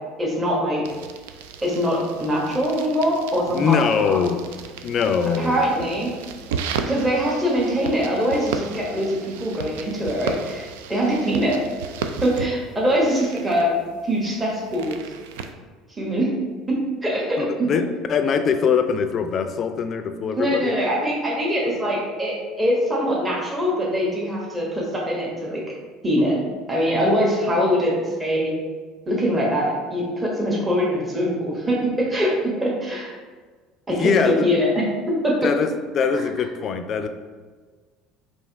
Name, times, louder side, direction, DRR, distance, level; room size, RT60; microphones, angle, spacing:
voice 1, 0.2-0.8 1.6-4.2 5.4-6.1 6.9-11.6 12.2-13.7 14.0-15.0 16.0-16.4 16.7-17.8 20.4-25.6 26.0-26.4 26.7-28.5 29.1-33.1 33.9-35.4 36.2-36.3, equal, 20° right, -4 dB, 1.1 m, -23 dB
sound 1, 0.8-15.5, right 6 dB, 85° right, 0.3 m, -35 dB
voice 2, 3.5-4.4 4.8-5.6 17.4-20.7 33.9-34.5 35.4-37.1, left 6 dB, 45° left, 8 dB, 0.4 m, -22 dB
3.4 x 2.7 x 4.5 m, 1.4 s
supercardioid pair, 90°, 0 cm